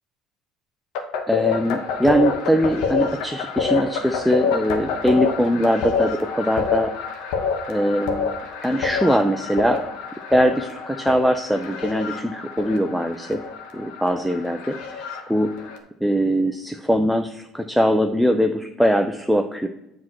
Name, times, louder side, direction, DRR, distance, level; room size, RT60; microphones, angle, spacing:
sound 1, 0.9-15.8, left 5 dB, 80° left, 0.9 m, -27 dB
voice 1, 1.3-6.9 7.7-8.4 8.6-9.8 10.3-13.4 13.7-15.5 16.0-19.7, equal, ahead, 5 dB, 0.5 m, -21 dB
7.4 x 3.1 x 5.9 m, 0.87 s
supercardioid pair, 80°, 0 cm